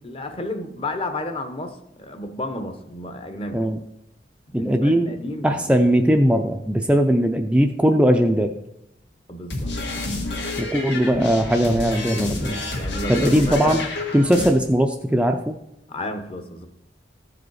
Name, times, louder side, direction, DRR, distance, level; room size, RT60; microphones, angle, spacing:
voice 1, 0.0-3.6 4.5-5.8 9.3-9.7 10.4-10.9 12.7-13.9 15.9-16.7, left 2 dB, 30° left, 8 dB, 0.9 m, -32 dB
voice 2, 4.5-5.1 5.4-8.5 10.6-12.6 13.1-13.8 14.1-15.6, equal, 5° right, 4 dB, 0.4 m, -19 dB
sound 1, 9.5-14.5, left 2 dB, 80° left, 2.0 m, -28 dB
14.0 x 5.0 x 4.7 m, 0.84 s
head